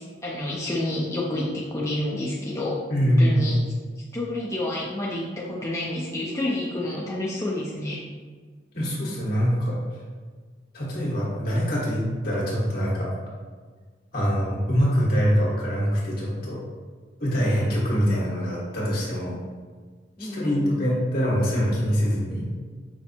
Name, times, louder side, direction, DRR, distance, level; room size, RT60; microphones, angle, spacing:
voice 1, 0.0-3.6 4.1-8.0 20.2-20.8, left 1 dB, 15° left, -5 dB, 0.4 m, -29 dB
voice 2, 2.9-3.5 8.7-9.8 10.7-13.1 14.1-16.6 17.2-19.4 20.2-22.5, equal, 55° left, -6 dB, 1.5 m, -24 dB
5.6 x 2.0 x 4.3 m, 1.5 s
head